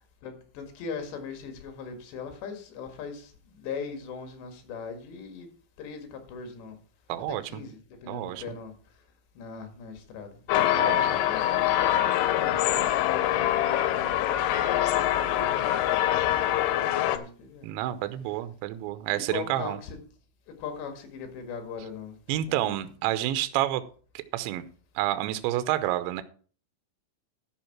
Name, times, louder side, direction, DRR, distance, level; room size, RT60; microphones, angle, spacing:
voice 1, 0.2-5.5 5.8-6.8 7.4-8.7 9.4-10.3 10.6-15.0 15.3-16.0 16.7-17.7 19.1-20.0 20.6-22.2 22.5-22.8, left 5 dB, 65° left, 7 dB, 3.8 m, -40 dB
voice 2, 7.1-7.4 8.1-8.4 10.8-11.1 17.6-19.8 22.3-23.8 24.1-24.7 25.0-26.2, right 14 dB, 80° right, 12 dB, 2.9 m, -29 dB
sound 1, 10.5-17.2, left 12 dB, 85° left, 3.3 m, -24 dB
12.0 x 6.4 x 5.9 m, 0.40 s
omnidirectional pair, 5.7 m